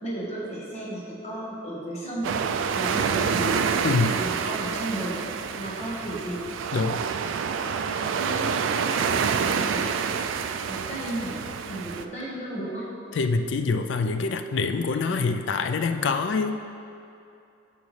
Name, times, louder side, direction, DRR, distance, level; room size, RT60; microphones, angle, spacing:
voice 1, 0.0-2.3 2.7-3.6 4.1-5.2 5.5-6.4 8.1-9.8 10.6-12.9, right 1 dB, 35° left, -6 dB, 1.4 m, -34 dB
sound 1, 2.2-12.0, right 6 dB, 70° right, 0.3 m, -27 dB
voice 2, 3.8-4.2 6.7-7.0 13.1-16.6, left 4 dB, 65° left, 7 dB, 0.4 m, -25 dB
9.1 x 5.9 x 3.2 m, 2.7 s
head